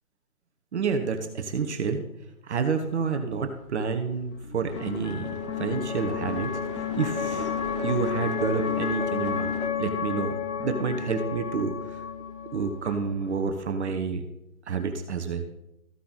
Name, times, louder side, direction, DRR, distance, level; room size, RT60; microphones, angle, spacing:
voice 1, 0.7-2.0 2.4-6.6 7.0-7.5 7.8-9.5 9.8-12.0 12.4-14.2 14.7-15.5, right 5 dB, 50° right, 6 dB, 1.0 m, -29 dB
sound 1, 3.3-13.6, left 6 dB, 60° left, 1.3 m, -32 dB
sound 2, 4.7-9.7, left 4 dB, 20° left, 0.6 m, -40 dB
14.0 x 5.6 x 4.1 m, 0.91 s
figure-of-eight pair, 135°, 42 cm